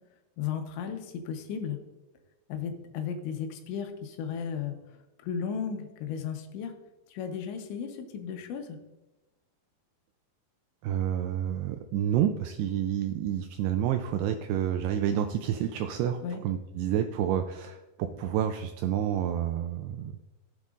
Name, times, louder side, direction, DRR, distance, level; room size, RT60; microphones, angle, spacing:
voice 1, 0.4-1.8 2.5-4.7 5.2-6.7 7.1-8.8 16.2-16.4, left 7 dB, 85° left, 6 dB, 3.3 m, -35 dB
voice 2, 10.8-20.2, right 10 dB, 85° right, 7 dB, 2.3 m, -29 dB
16.0 x 8.2 x 2.5 m, 1.1 s
omnidirectional pair, 5.2 m